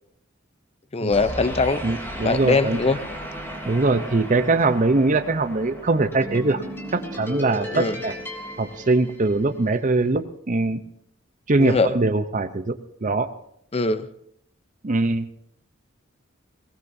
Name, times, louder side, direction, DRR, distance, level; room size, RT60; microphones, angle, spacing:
voice 1, 0.9-1.8 2.2-3.0 7.7-8.0 11.6-11.9 13.7-14.1, left 3 dB, 30° left, 12 dB, 0.6 m, -21 dB
sound 1, 1.1-9.7, equal, 10° left, 3.2 m, -35 dB
voice 2, 1.8-2.9 3.6-6.6 6.9-8.1 8.6-10.8 11.5-12.8 13.0-13.3 14.8-15.3, right 3 dB, 40° right, 9 dB, 0.7 m, -22 dB
22.0 x 18.5 x 2.7 m, 0.72 s
head